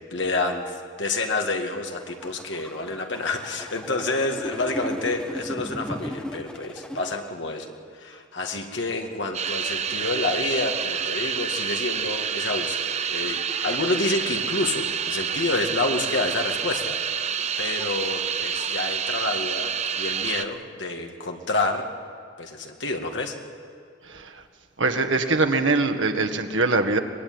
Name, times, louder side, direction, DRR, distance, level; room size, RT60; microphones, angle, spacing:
voice 1, 0.0-17.0 17.6-21.9 22.4-23.3, left 2 dB, 70° left, 3 dB, 2.2 m, -28 dB
sound 1, 1.9-7.2, left 1 dB, 5° left, 1.4 m, -36 dB
sound 2, 9.3-20.4, right 7 dB, 35° right, 0.7 m, -28 dB
voice 2, 24.0-24.4 24.8-27.0, right 3 dB, 90° right, 6 dB, 1.7 m, -23 dB
24.5 x 20.0 x 9.5 m, 2.2 s
head